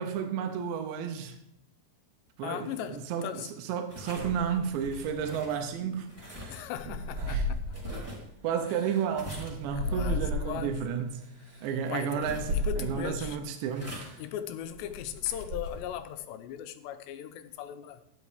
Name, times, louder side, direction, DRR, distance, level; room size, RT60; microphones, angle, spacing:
voice 1, 0.0-1.4 2.4-6.1 6.9-7.0 7.2-7.5 8.4-11.1 11.6-14.1, right 7 dB, 85° right, 3.3 m, -32 dB
voice 2, 2.4-3.5 6.5-7.6 9.8-10.8 11.9-13.4 14.2-18.0, left 10 dB, 85° left, 3.0 m, -38 dB
sound 1, 3.9-16.1, equal, 5° right, 2.5 m, -47 dB
sound 2, 4.2-5.3 6.2-8.1 8.6-10.8 11.4-11.6 12.2-13.3 13.9-14.2 14.6-16.0, left 1 dB, 40° right, 2.6 m, -35 dB
12.5 x 10.0 x 5.1 m
omnidirectional pair, 5.0 m